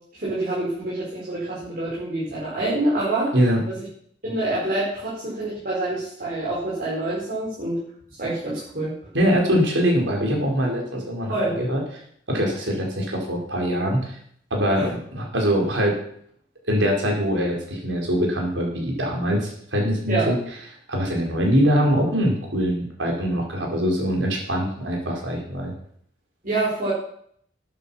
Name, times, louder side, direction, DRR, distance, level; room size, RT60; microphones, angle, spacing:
voice 1, 0.2-3.3 3.7-3.8 4.2-7.8 8.2-8.9 11.3-11.6 14.7-14.9 20.1-20.3 26.4-26.9, right 2 dB, 50° right, -7 dB, 5.5 m, -26 dB
voice 2, 9.1-11.8 12.3-14.2 14.5-16.0 16.7-20.3 20.9-25.7, equal, 90° right, 0 dB, 4.9 m, -23 dB
13.0 x 10.5 x 5.8 m, 0.63 s
head